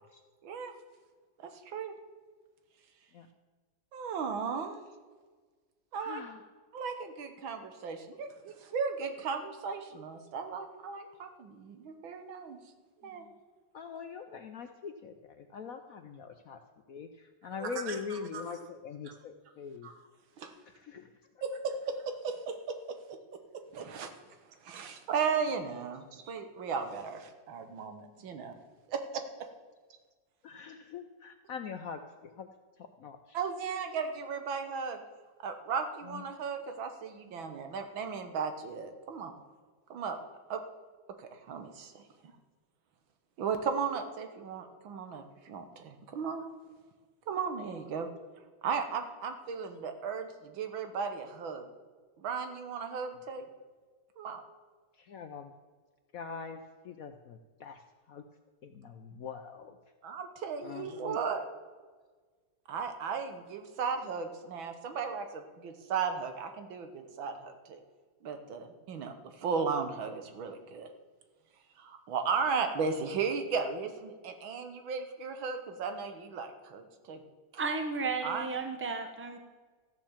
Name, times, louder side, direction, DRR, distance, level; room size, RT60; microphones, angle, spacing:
voice 1, 0.4-0.7 1.4-1.9 3.9-4.8 5.9-6.2 6.7-12.6 13.0-13.2 17.5-18.4 19.8-19.9 20.4-20.5 21.4-23.2 23.7-24.1 24.6-28.6 28.9-29.5 33.3-35.0 35.4-39.3 39.9-40.2 40.5-40.6 41.2-42.3 43.4-46.5 47.3-48.1 48.6-51.7 52.2-53.4 54.2-54.4 60.0-61.4 62.7-67.8 68.2-70.9 71.8-77.2 78.2-78.5, right 5 dB, 85° right, 7 dB, 2.0 m, -36 dB
voice 2, 6.0-6.4 13.2-13.3 13.7-16.6 16.9-19.9 20.7-21.1 30.4-32.5 32.8-33.4 36.1-36.2 55.0-55.5 56.1-56.6 56.8-57.8 58.1-58.2 58.6-59.8 60.6-61.2, left 6 dB, 65° left, 7 dB, 0.9 m, -43 dB
voice 3, 77.6-79.4, right 4 dB, 10° right, 5 dB, 0.7 m, -33 dB
13.5 x 7.2 x 7.3 m, 1.4 s
omnidirectional pair, 2.1 m